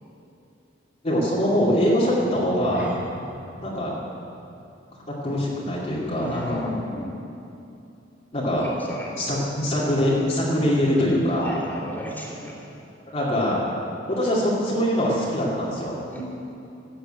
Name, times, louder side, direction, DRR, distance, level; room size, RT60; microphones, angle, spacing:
voice 1, 1.0-2.9 3.6-4.0 5.2-6.7 8.3-8.7 9.2-11.6 13.1-13.6 14.1-16.0, equal, 35° left, -6 dB, 2.5 m, -23 dB
sound 1, 2.4-7.0 7.3-7.6 8.1-8.2, equal, 10° right, 1.8 m, -43 dB
voice 2, 6.2-7.2 8.5-9.3 11.4-12.7 16.1-16.2, left 1 dB, 10° left, -4 dB, 3.1 m, -34 dB
15.0 x 8.2 x 8.9 m, 2.7 s
head